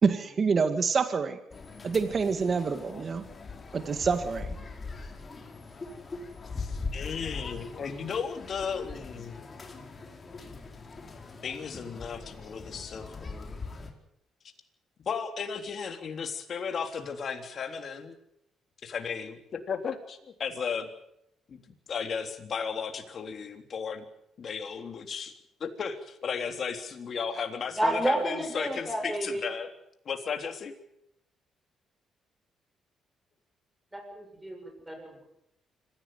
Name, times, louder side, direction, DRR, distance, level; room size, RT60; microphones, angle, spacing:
voice 1, 0.0-1.4 1.8-3.2 3.7-4.6, right 5 dB, 45° right, 9 dB, 2.0 m, -26 dB
sound 1, 1.5-13.9, left 4 dB, 35° left, 4.5 m, -41 dB
voice 2, 6.6-9.4 11.4-13.6 15.1-18.2 18.8-20.9 21.5-21.6 21.9-24.0 24.4-25.3 25.6-29.7 30.1-30.7, left 6 dB, 50° left, 6 dB, 3.5 m, -35 dB
voice 3, 27.8-29.4 33.9-35.2, right 1 dB, 10° right, 2 dB, 7.4 m, -30 dB
26.0 x 16.0 x 9.3 m, 0.79 s
cardioid pair, 90°, 0 cm